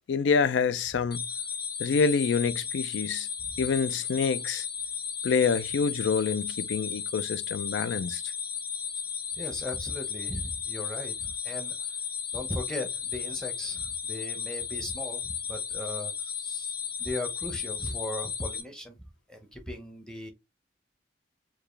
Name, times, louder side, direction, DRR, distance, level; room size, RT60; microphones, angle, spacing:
voice 1, 0.1-1.2 1.8-3.3 3.6-4.7 5.2-8.2, left 5 dB, 80° left, 0.4 m, -27 dB
sound 1, 1.1-18.6, left 7 dB, 55° left, 1.0 m, -34 dB
voice 2, 9.3-12.0 12.3-16.7 17.0-20.3, left 1 dB, 5° left, 0.7 m, -38 dB
4.7 x 2.3 x 3.1 m
head